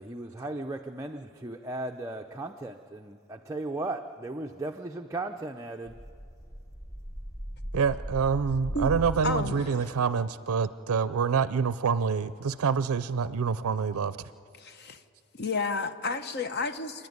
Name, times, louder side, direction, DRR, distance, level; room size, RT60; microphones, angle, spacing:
voice 1, 0.0-5.9, right 2 dB, 15° right, 3 dB, 0.5 m, -36 dB
sound 1, 5.9-10.2, equal, 15° left, 0.9 m, -38 dB
voice 2, 7.7-14.2, right 6 dB, 80° right, 15 dB, 0.4 m, -27 dB
voice 3, 9.2-9.7 14.6-15.0 15.4-17.1, left 3 dB, 50° left, 10 dB, 0.9 m, -31 dB
28.5 x 10.0 x 9.4 m, 2.5 s
head